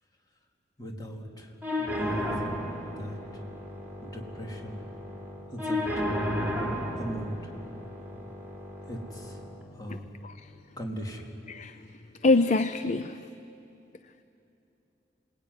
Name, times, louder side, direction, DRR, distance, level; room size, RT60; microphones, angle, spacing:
voice 1, 0.8-1.5 1.8-2.6 3.0-3.2 4.0-4.8 5.5-5.9 7.0-7.4 8.9-9.4 9.7-10.0 10.8-11.3, equal, 20° left, 0 dB, 3.1 m, -39 dB
sound 1, 1.6-9.6, left 1 dB, 10° right, 4.4 m, -33 dB
voice 2, 12.2-13.2, left 3 dB, 40° left, 11 dB, 0.6 m, -24 dB
28.0 x 20.5 x 9.6 m, 2.9 s
head